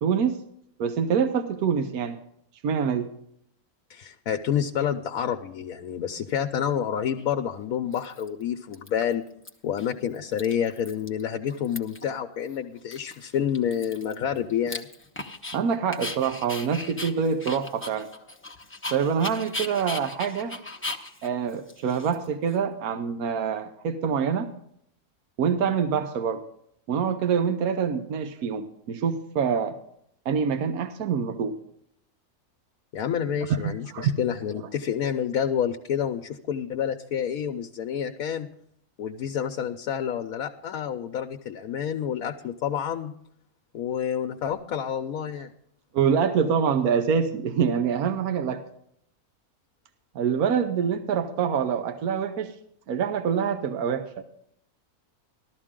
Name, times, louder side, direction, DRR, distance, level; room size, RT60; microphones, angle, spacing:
voice 1, 0.0-0.4 0.8-2.2 2.6-3.1 15.5-18.1 18.9-20.6 21.2-24.5 25.4-26.4 26.9-29.8 30.2-31.6 33.5-34.2 45.9-48.6 50.1-52.5 52.9-54.2, right 7 dB, 75° right, 8 dB, 1.3 m, -25 dB
voice 2, 3.9-9.2 9.6-14.9 32.9-38.5 39.0-43.1 43.7-45.5, left 8 dB, 75° left, 6 dB, 1.1 m, -28 dB
Dog, 7.2-7.3 7.9-8.4 8.7-9.5 9.8-9.9 10.1-11.2 11.5-12.1 12.5-12.6 12.9-15.6 15.9-22.5, left 2 dB, 10° left, 0.6 m, -38 dB
14.0 x 13.0 x 3.7 m, 0.70 s
omnidirectional pair, 1.6 m